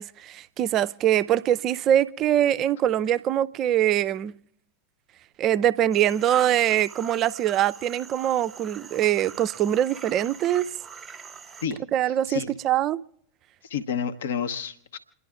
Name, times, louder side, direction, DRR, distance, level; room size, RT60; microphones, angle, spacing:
voice 1, 0.0-4.4 5.4-10.7 11.9-13.0, right 11 dB, 35° right, 0.5 m, -23 dB
sound 1, 5.9-11.7, right 6 dB, 15° right, 1.1 m, -43 dB
voice 2, 13.7-15.0, left 7 dB, 60° left, 0.9 m, -29 dB
29.0 x 11.0 x 3.5 m
figure-of-eight pair, 90°, 0 cm